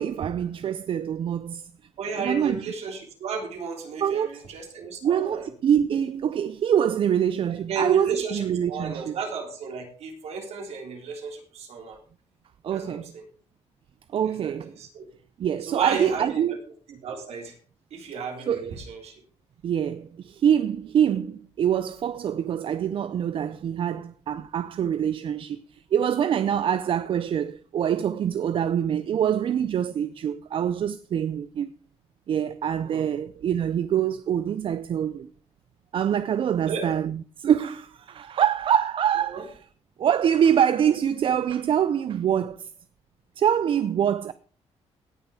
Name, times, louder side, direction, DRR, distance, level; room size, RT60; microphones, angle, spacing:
voice 1, 0.0-1.6 2.2-2.6 4.0-4.4 5.0-9.1 12.6-13.1 14.1-14.8 15.4-16.6 18.5-18.7 19.6-31.7 32.3-35.3 35.9-39.5 40.0-42.7 43.4-44.3, right 9 dB, 50° right, 0.5 m, -25 dB
voice 2, 2.0-5.5 7.7-12.0 12.7-13.2 14.4-15.1 15.6-16.4 16.9-17.6 17.9-19.2 32.8-33.1 36.7-36.9 39.3-39.4, right 5 dB, 70° right, 3.5 m, -33 dB
17.5 x 6.3 x 4.9 m
cardioid pair, 145°, 11 cm